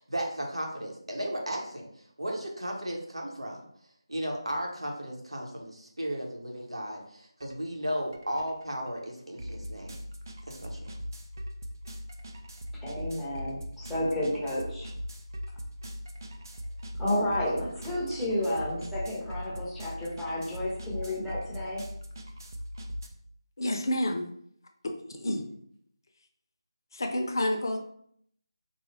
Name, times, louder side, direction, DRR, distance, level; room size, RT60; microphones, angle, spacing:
voice 1, 0.0-1.8 2.2-3.6 4.1-10.0 10.5-10.9, equal, 80° right, 0 dB, 1.0 m, -35 dB
sound 1, 7.4-7.5 7.9-23.1, equal, 40° right, 0.5 m, -40 dB
voice 2, 12.8-14.9 17.0-21.8, left 1 dB, ahead, -9 dB, 0.7 m, -31 dB
voice 3, 23.6-24.3 25.1-25.5 26.9-27.8, left 1 dB, 45° left, 4 dB, 0.6 m, -29 dB
3.8 x 2.3 x 3.3 m, 0.67 s
figure-of-eight pair, 160°, 3 cm